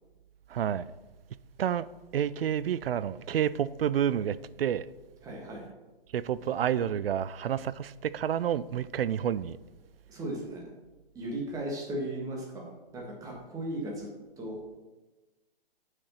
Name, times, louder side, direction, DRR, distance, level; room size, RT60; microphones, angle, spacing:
voice 1, 0.5-0.9 1.6-1.9 2.1-4.9 6.1-9.6, right 9 dB, 75° right, 0.4 m, -29 dB
voice 2, 5.2-5.7 6.4-6.5 10.1-10.6 11.1-14.1 14.4-14.6, right 1 dB, 10° right, 1.5 m, -36 dB
7.6 x 4.9 x 5.6 m
hypercardioid pair, 145°, 29 cm